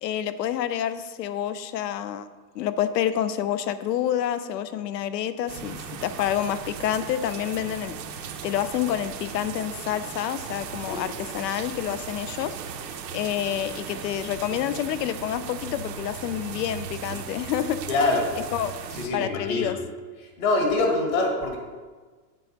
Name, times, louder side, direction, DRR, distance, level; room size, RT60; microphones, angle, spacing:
voice 1, 0.0-2.3 2.5-17.8 18.5-18.7 19.1-19.8, left 10 dB, 85° left, 13 dB, 0.7 m, -28 dB
sound 1, 5.5-19.1, right 7 dB, 85° right, 1.0 m, -37 dB
voice 2, 17.9-18.3 18.9-19.7 20.2-21.6, left 2 dB, 55° left, 1 dB, 2.0 m, -24 dB
7.7 x 5.3 x 4.5 m, 1.4 s
supercardioid pair, 160°, 49 cm